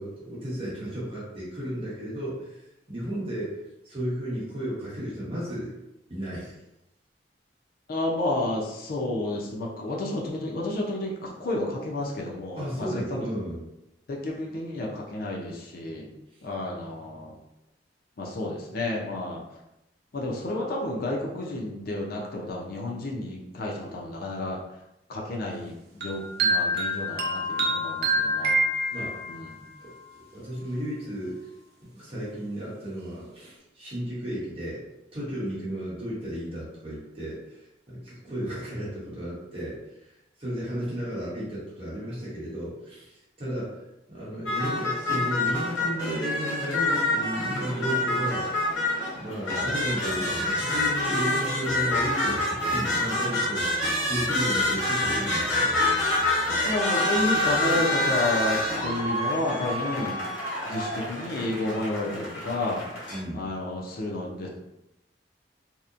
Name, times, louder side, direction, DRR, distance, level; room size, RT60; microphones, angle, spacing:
voice 1, 0.0-2.6 2.9-3.6 3.8-5.7 6.1-6.6 12.5-13.6 28.9-29.2 29.8-29.9 30.3-31.4 31.9-34.8 35.1-39.8 40.4-43.8 44.1-48.7 49.1-55.8 63.1-63.5, equal, 30° right, -8 dB, 1.0 m, -33 dB
voice 2, 7.9-13.3 14.1-16.1 16.4-17.3 18.2-19.4 20.1-24.6 25.1-28.6 29.3-29.6 56.6-60.2 60.7-62.8 63.3-64.5, left 1 dB, 55° left, -2 dB, 0.5 m, -31 dB
sound 1, 26.0-29.5, right 1 dB, 60° right, 0.4 m, -26 dB
sound 2, 44.5-63.2, left 1 dB, 90° left, 0.7 m, -27 dB
Human voice / Train, 53.9-61.7, right 1 dB, 25° left, 1.2 m, -43 dB
2.8 x 2.1 x 2.4 m, 0.89 s
head